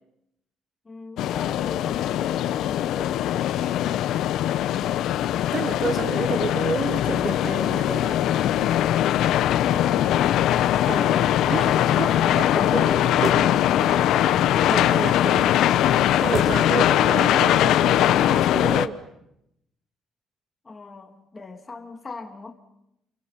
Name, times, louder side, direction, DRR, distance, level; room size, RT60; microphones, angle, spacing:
voice 1, 0.8-4.2 9.7-10.2 20.6-22.5, left 3 dB, 20° left, 5 dB, 2.6 m, -41 dB
sound 1, 1.2-18.9, left 12 dB, 70° left, 1.0 m, -21 dB
voice 2, 5.5-8.2 10.9-13.3 14.6-15.6 16.2-19.0, right 5 dB, 30° right, 11 dB, 1.1 m, -30 dB
sound 2, 7.9-16.7, right 3 dB, 50° right, 5.4 m, -38 dB
29.0 x 28.0 x 5.8 m, 0.82 s
cardioid pair, 150°, 0 cm